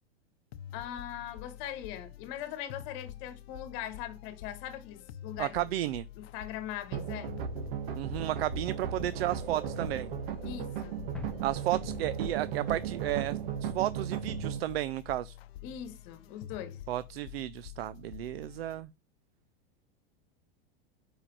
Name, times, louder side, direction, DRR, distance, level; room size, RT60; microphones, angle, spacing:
sound 1, 0.5-18.8, left 12 dB, 85° left, 0.7 m, -48 dB
voice 1, 0.7-5.6 6.2-7.4 10.4-11.0 15.6-16.8, left 10 dB, 40° left, 1.4 m, -41 dB
voice 2, 5.4-6.1 7.9-10.1 11.4-15.3 16.9-18.9, right 14 dB, 85° right, 0.5 m, -33 dB
sound 2, 6.9-14.6, right 8 dB, 60° right, 1.2 m, -36 dB
sound 3, 11.1-13.6, left 1 dB, 5° left, 0.5 m, -47 dB
5.1 x 5.0 x 5.5 m
supercardioid pair, 160°, 30 cm